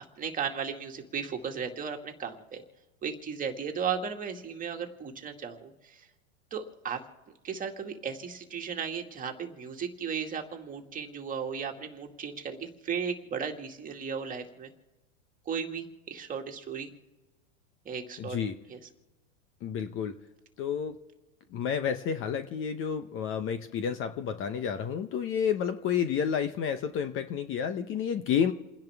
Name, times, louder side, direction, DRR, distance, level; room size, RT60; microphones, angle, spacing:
voice 1, 0.2-2.6 3.0-6.1 6.5-7.0 7.4-14.7 15.5-16.9 17.9-18.4 18.7-18.8, right 6 dB, 20° right, 3 dB, 2.1 m, -35 dB
voice 2, 18.2-18.5 19.6-20.2 20.6-21.0 21.5-28.5, left 7 dB, 30° left, 10 dB, 0.9 m, -30 dB
29.5 x 10.5 x 3.5 m, 1.1 s
hypercardioid pair, 125°, 38 cm